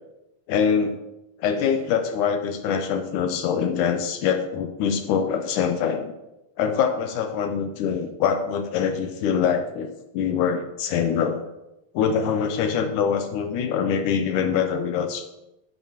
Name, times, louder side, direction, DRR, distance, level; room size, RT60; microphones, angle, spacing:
voice 1, 0.5-1.0 1.4-6.1 6.6-9.9 10.1-11.4 11.9-15.3, left 7 dB, 80° left, 6 dB, 2.0 m, -24 dB
11.0 x 11.0 x 2.9 m, 0.93 s
omnidirectional pair, 4.1 m